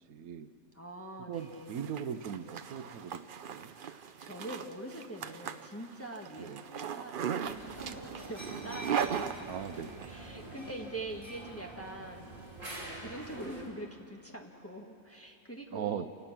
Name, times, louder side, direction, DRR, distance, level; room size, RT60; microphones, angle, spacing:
voice 1, 0.1-0.5 1.3-3.7 6.4-6.6 9.4-10.1 15.7-16.1, right 8 dB, 80° right, 11 dB, 1.2 m, -39 dB
voice 2, 0.7-1.9 3.7-7.1 7.6-9.5 10.1-12.5 13.0-16.1, right 1 dB, 10° left, 1 dB, 1.3 m, -44 dB
Zipper (clothing), 1.4-10.1, right 8 dB, 55° right, 0.6 m, -38 dB
sound 1, 7.4-13.7, right 2 dB, 35° right, 3.2 m, -46 dB
28.5 x 18.0 x 6.0 m, 2.5 s
omnidirectional pair, 1.5 m